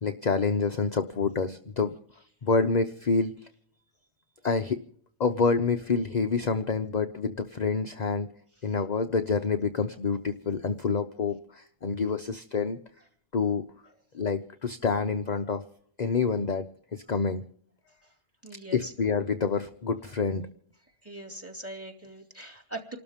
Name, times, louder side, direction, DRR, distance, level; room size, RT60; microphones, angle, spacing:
voice 1, 0.0-1.9 2.4-3.3 4.4-4.8 5.2-8.3 8.6-12.8 13.3-13.7 14.1-15.6 16.0-16.6 16.9-17.4 18.7-20.4, left 4 dB, 35° left, 7 dB, 0.7 m, -27 dB
voice 2, 18.4-18.9 21.0-23.0, right 2 dB, 10° right, 5 dB, 2.5 m, -41 dB
29.0 x 13.0 x 3.6 m, 0.62 s
omnidirectional pair, 1.5 m